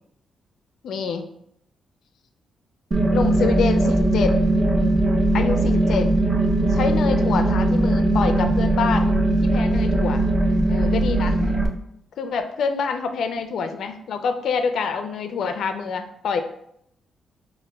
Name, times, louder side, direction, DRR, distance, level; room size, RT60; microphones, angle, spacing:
voice 1, 0.8-1.2 3.1-4.6 5.3-6.1 6.7-9.1 9.4-10.3 10.7-11.4 12.2-16.4, left 5 dB, 75° left, 7 dB, 0.4 m, -26 dB
sound 1, 2.9-11.7, right 1 dB, 30° right, 0.5 m, -19 dB
6.3 x 2.2 x 2.2 m, 0.74 s
cardioid pair, 100°, 0 cm